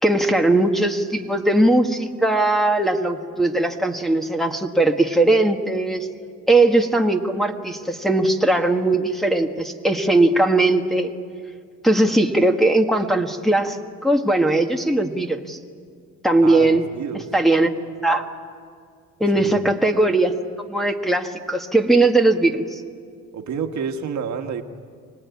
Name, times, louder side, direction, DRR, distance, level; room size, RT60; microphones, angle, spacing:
voice 1, 0.0-6.1 6.5-11.1 11.8-15.6 16.2-16.8 17.3-17.7 18.0-18.2 19.2-20.4 20.7-22.8, right 2 dB, ahead, 2 dB, 1.7 m, -19 dB
voice 2, 16.4-17.3 19.3-19.6 23.3-24.6, right 6 dB, 65° right, 5 dB, 1.8 m, -29 dB
25.0 x 19.5 x 9.6 m, 2.2 s
cardioid pair, 90°, 30 cm